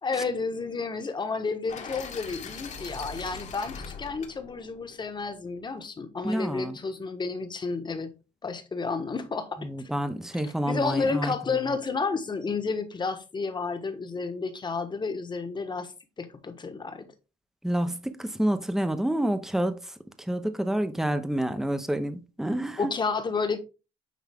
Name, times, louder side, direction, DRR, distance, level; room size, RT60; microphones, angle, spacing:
voice 1, 0.0-8.1 8.4-9.7 10.4-15.9 16.2-17.1 22.8-23.6, left 4 dB, 25° left, 1.3 m, -31 dB
sound 1, 1.7-5.7, left 5 dB, 45° left, 1.5 m, -41 dB
voice 2, 6.2-6.8 9.6-11.6 17.6-19.8 20.3-22.8, right 1 dB, ahead, 0.8 m, -28 dB
9.3 x 3.6 x 3.6 m
cardioid pair, 110°, 17 cm